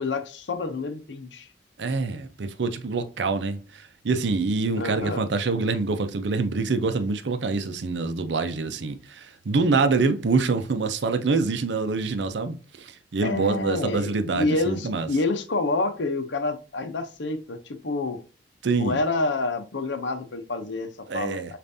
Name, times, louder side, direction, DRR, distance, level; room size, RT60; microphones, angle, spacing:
voice 1, 0.0-1.5 4.7-5.2 13.2-18.2 18.7-21.6, left 3 dB, 90° left, 0.7 m, -28 dB
voice 2, 1.8-15.1 18.6-19.0 21.1-21.5, right 4 dB, 75° right, 0.6 m, -25 dB
6.7 x 2.5 x 2.6 m
head